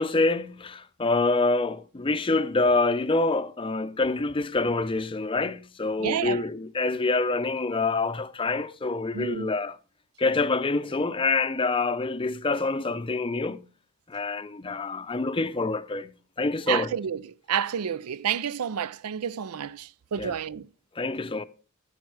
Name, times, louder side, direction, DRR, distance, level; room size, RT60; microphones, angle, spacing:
voice 1, 0.0-9.8 10.2-13.6 14.1-16.1 16.4-16.9 20.2-20.3 21.0-21.4, left 3 dB, 25° left, 0.5 m, -26 dB
voice 2, 6.0-6.4 9.1-9.5 16.7-20.7, right 8 dB, 85° right, 0.5 m, -30 dB
15.0 x 7.4 x 4.8 m
head